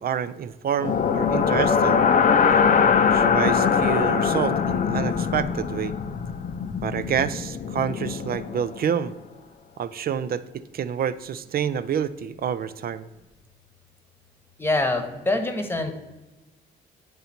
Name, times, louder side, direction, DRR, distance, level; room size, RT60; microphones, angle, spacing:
voice 1, 0.0-2.0 3.1-5.9 6.8-9.1 9.8-13.1, right 8 dB, 50° right, 14 dB, 0.5 m, -28 dB
sound 1, 0.8-8.8, left 6 dB, 40° left, 0.6 m, -22 dB
voice 2, 14.6-16.0, left 2 dB, 10° left, 5 dB, 1.1 m, -25 dB
9.3 x 3.9 x 4.3 m, 1.1 s
cardioid pair, 90°, 20 cm